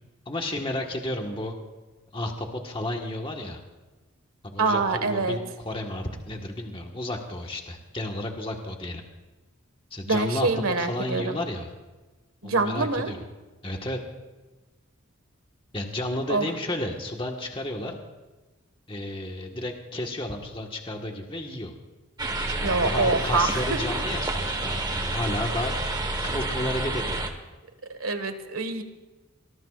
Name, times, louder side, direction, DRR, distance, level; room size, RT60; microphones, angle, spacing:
voice 1, 0.3-1.5 2.1-3.6 4.4-9.0 9.9-10.5 10.8-11.7 12.4-13.2 13.6-14.0 15.7-18.0 18.9-21.7 22.6-25.7 26.2-27.2, left 1 dB, 25° left, 2 dB, 1.5 m, -32 dB
voice 2, 4.6-5.4 10.1-11.4 12.4-13.1 16.3-16.5 22.6-23.6 27.9-28.8, right 3 dB, 90° right, 8 dB, 1.7 m, -25 dB
sound 1, 22.2-27.3, right 2 dB, 20° right, 1.3 m, -29 dB
24.0 x 20.5 x 2.5 m, 1.2 s
head